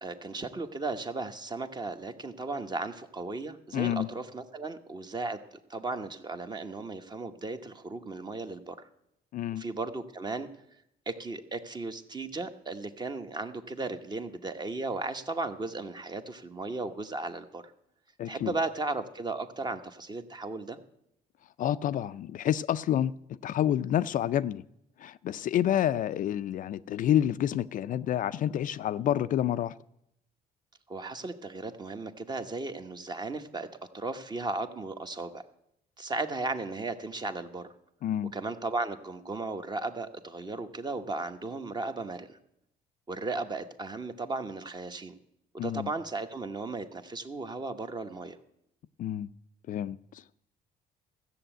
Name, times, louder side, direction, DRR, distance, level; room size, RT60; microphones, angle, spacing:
voice 1, 0.0-8.8 9.5-10.5 11.1-17.6 18.2-20.8 30.9-33.7 33.9-35.4 36.0-37.7 38.3-42.4 43.1-45.1 45.5-48.4, right 3 dB, 25° right, 1.1 m, -35 dB
voice 2, 3.7-4.1 9.3-9.7 18.2-18.5 21.6-23.2 23.4-24.6 25.0-29.8 38.0-38.3 45.6-45.9 49.0-49.3 49.7-50.2, left 11 dB, 50° left, 0.4 m, -28 dB
14.5 x 7.1 x 8.9 m
cardioid pair, 110°, 17 cm